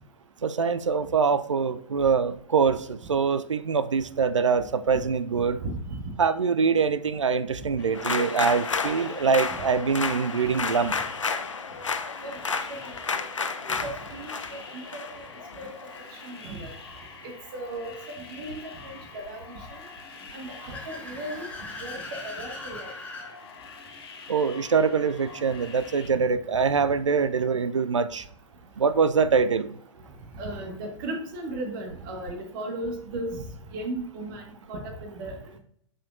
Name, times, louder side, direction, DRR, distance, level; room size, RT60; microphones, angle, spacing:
voice 1, 0.4-5.6 6.2-10.9 24.3-28.2 28.8-29.8, right 5 dB, 75° right, 12 dB, 0.5 m, -24 dB
voice 2, 5.3-6.0 12.2-13.2 13.6-15.2 15.6-15.7 16.2-16.7 17.2-19.8 20.3-21.5 21.8-22.9 26.2-26.3 29.3-29.4 30.3-33.5 33.7-35.6, right 1 dB, 40° right, 3 dB, 1.5 m, -36 dB
sound 1, 7.8-26.1, left 5 dB, 55° left, 1.2 m, -45 dB
sound 2, 7.9-16.3, left 5 dB, 80° left, 0.6 m, -32 dB
Car / Accelerating revving vroom, 20.1-23.3, left 2 dB, 10° left, 1.4 m, -41 dB
8.4 x 5.1 x 2.5 m, 0.65 s
figure-of-eight pair, 110°, 16 cm